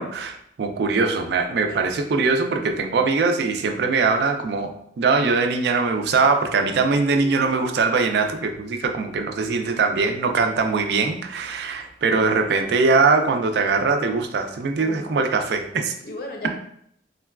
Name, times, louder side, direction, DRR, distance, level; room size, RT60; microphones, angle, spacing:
voice 1, 0.0-15.9, right 4 dB, 65° right, 6 dB, 0.3 m, -22 dB
voice 2, 10.4-10.7 14.8-15.2 16.0-16.5, left 2 dB, 55° left, 2 dB, 0.6 m, -38 dB
3.7 x 2.2 x 2.3 m, 0.69 s
head